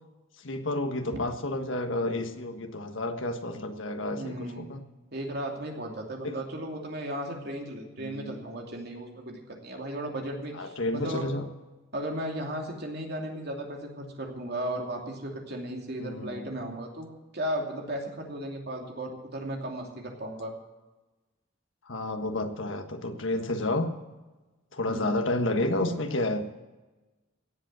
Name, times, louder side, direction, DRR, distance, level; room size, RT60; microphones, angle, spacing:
voice 1, 0.4-4.8 6.2-6.4 8.0-8.3 10.6-11.5 16.0-16.7 21.9-23.9 24.7-26.5, left 2 dB, 75° left, 6 dB, 1.5 m, -30 dB
voice 2, 4.1-4.7 5.1-11.3 11.9-17.1 17.3-20.5 24.9-25.2, right 1 dB, 55° right, 1 dB, 2.8 m, -35 dB
17.0 x 8.0 x 7.5 m, 1.2 s
head